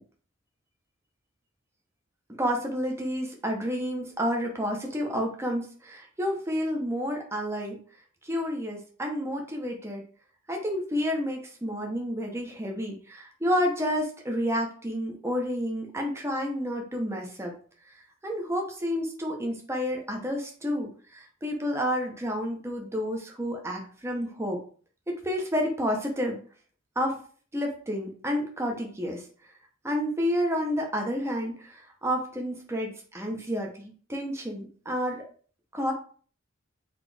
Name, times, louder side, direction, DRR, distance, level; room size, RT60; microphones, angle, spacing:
voice 1, 2.4-7.8 8.3-10.0 10.5-17.5 18.2-20.9 21.1-24.6 25.1-26.4 27.0-27.2 27.5-29.2 29.8-31.5 32.0-35.3 35.7-35.9, equal, 15° right, 1 dB, 0.8 m, -30 dB
4.1 x 3.0 x 3.4 m, 0.43 s
head